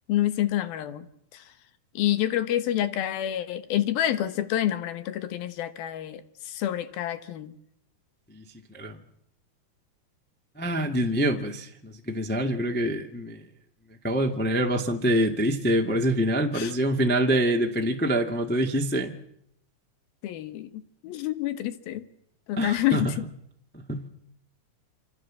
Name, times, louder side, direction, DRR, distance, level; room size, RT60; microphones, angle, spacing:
voice 1, 0.1-1.1 1.3-1.4 1.9-7.5 16.5-16.7 20.2-22.1 22.5-23.2, left 12 dB, 75° left, 3.2 m, -28 dB
voice 2, 10.6-13.4 14.0-19.1 22.6-23.1 23.9-24.0, right 1 dB, 15° left, 0.3 m, -25 dB
26.5 x 25.5 x 7.6 m
omnidirectional pair, 4.3 m